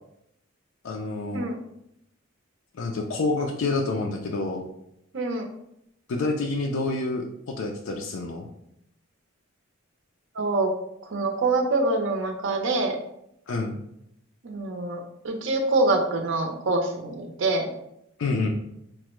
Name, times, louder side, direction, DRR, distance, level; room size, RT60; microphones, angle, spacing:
voice 1, 0.8-1.5 2.7-4.6 6.1-8.5 13.5-13.8 18.2-18.5, left 3 dB, 65° left, 2 dB, 0.4 m, -28 dB
voice 2, 5.1-5.5 10.4-10.7 11.1-13.0 14.4-15.0 15.2-17.7, right 2 dB, 65° right, 3 dB, 0.6 m, -25 dB
4.6 x 2.1 x 3.0 m, 0.78 s
head